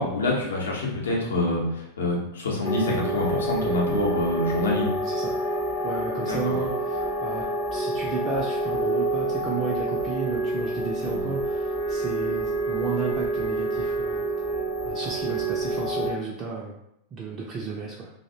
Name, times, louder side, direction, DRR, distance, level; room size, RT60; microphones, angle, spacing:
voice 1, 0.0-4.9 6.2-6.5 11.0-11.3, left 2 dB, 65° left, -3 dB, 0.7 m, -26 dB
sound 1, 2.6-16.1, right 2 dB, 25° left, 0.5 m, -28 dB
voice 2, 5.1-5.4 5.8-7.4 7.7-14.3 14.8-16.8 17.1-18.1, right 4 dB, 30° right, -3 dB, 0.3 m, -33 dB
2.5 x 2.0 x 2.6 m, 0.77 s
figure-of-eight pair, 90°, 0 cm